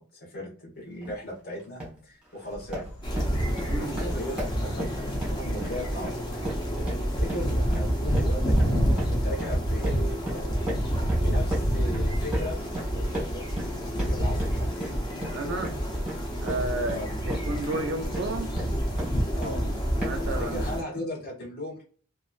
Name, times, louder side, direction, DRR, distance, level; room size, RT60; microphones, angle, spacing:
voice 1, 0.0-2.9 3.7-6.6 7.2-12.6 12.9-13.5 13.8-15.0 16.9-17.1 19.4-19.6 20.4-21.8, left 1 dB, 45° left, 1.2 m, -38 dB
sound 1, 1.0-1.2 1.6-2.0 2.4-19.6 20.0-20.4, right 1 dB, 5° right, 1.2 m, -37 dB
sound 2, 2.5-20.1, equal, 85° left, 0.8 m, -45 dB
sound 3, 3.0-20.8, equal, 20° left, 0.6 m, -28 dB
voice 2, 3.7-4.0 15.3-15.7 16.4-18.6 20.0-20.7, right 2 dB, 50° right, 0.4 m, -32 dB
3.0 x 2.4 x 2.4 m
head